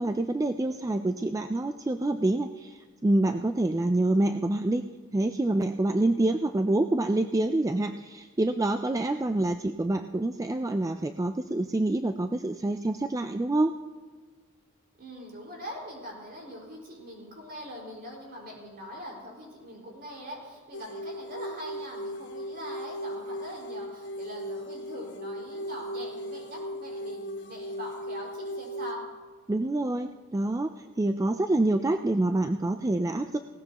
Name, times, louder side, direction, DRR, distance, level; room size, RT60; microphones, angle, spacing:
voice 1, 0.0-4.8 5.1-13.7 29.5-33.4, right 2 dB, 15° right, 7 dB, 0.3 m, -27 dB
voice 2, 15.0-29.0, equal, 45° right, -2 dB, 5.1 m, -42 dB
sound 1, 20.7-28.9, equal, 55° left, 1.2 m, -37 dB
19.0 x 18.0 x 3.0 m, 1.5 s
head